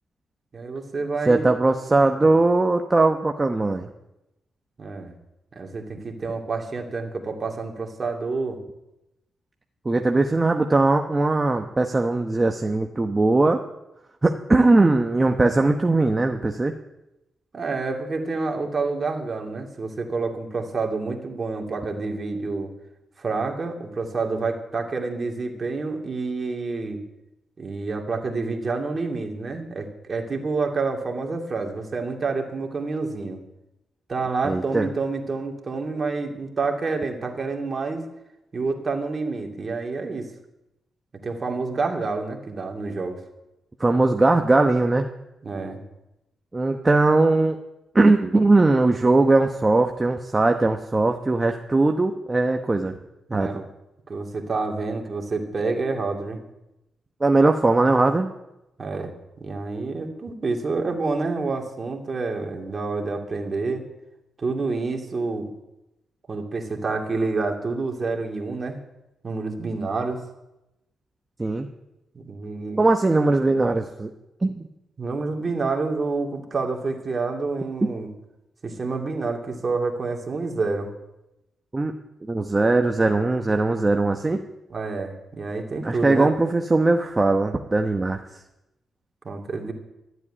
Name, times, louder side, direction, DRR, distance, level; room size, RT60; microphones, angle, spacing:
voice 1, 0.5-1.5 1.9-2.4 4.8-5.1 5.6-8.6 17.5-22.7 23.2-27.0 27.6-33.4 34.1-38.0 38.5-40.3 41.2-43.2 45.4-45.8 53.3-53.7 54.1-56.4 58.8-59.1 59.4-63.8 64.4-65.5 66.3-68.8 69.2-70.2 72.1-72.8 75.0-78.1 78.6-80.9 84.7-86.3 89.2-89.7, right 3 dB, 40° right, 2 dB, 2.5 m, -28 dB
voice 2, 1.3-3.9 9.8-13.6 14.2-16.7 34.5-34.9 43.8-45.1 46.5-47.6 47.9-52.9 53.3-53.5 57.2-58.3 71.4-71.7 72.8-74.1 74.4-74.7 81.7-81.9 82.3-84.4 85.8-88.2, right 2 dB, 20° right, 4 dB, 1.0 m, -20 dB
13.5 x 8.1 x 9.9 m, 0.92 s
cardioid pair, 90°, 0 cm